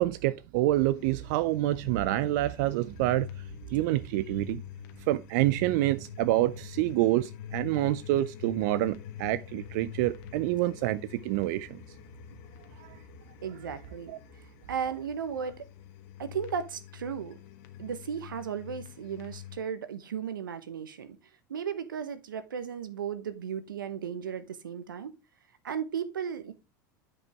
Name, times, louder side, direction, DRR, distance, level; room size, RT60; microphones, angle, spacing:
voice 1, 0.0-3.3 3.7-4.6 5.1-11.8 12.8-13.0 14.1-14.2, right 16 dB, 60° right, 0.4 m, -27 dB
sound 1, 0.9-19.6, left 11 dB, 60° left, 1.3 m, -46 dB
voice 2, 13.4-15.6 16.2-17.4 17.8-21.2 21.5-25.2 25.6-26.5, right 7 dB, 85° right, 1.0 m, -35 dB
9.6 x 5.4 x 3.4 m
hypercardioid pair, 90°, 11 cm